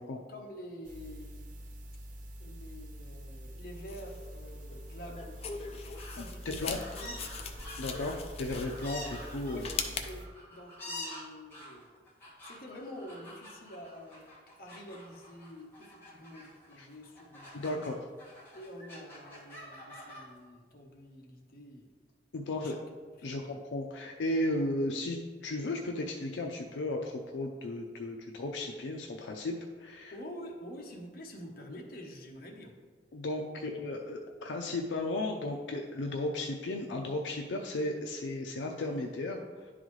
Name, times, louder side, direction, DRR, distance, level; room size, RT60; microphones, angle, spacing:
voice 1, 0.0-1.5 2.4-5.7 6.0-7.2 9.5-9.7 10.0-12.1 12.4-14.3 14.6-17.9 18.5-22.0 22.6-22.8 23.3-23.6 30.1-32.7, equal, 55° left, 0 dB, 0.9 m, -48 dB
sound 1, 0.8-10.3, equal, 50° right, 0.6 m, -46 dB
sound 2, 3.9-10.1, left 5 dB, 35° left, 0.5 m, -41 dB
sound 3, 5.6-6.2 6.6-17.9 18.2-20.2, left 1 dB, 10° left, 1.8 m, -47 dB
voice 2, 7.8-9.7 16.8-16.9 17.5-17.9 22.3-22.8 23.2-30.1 33.1-39.7, left 2 dB, 85° left, 2 dB, 0.5 m, -35 dB
10.5 x 3.9 x 3.1 m, 1.5 s
head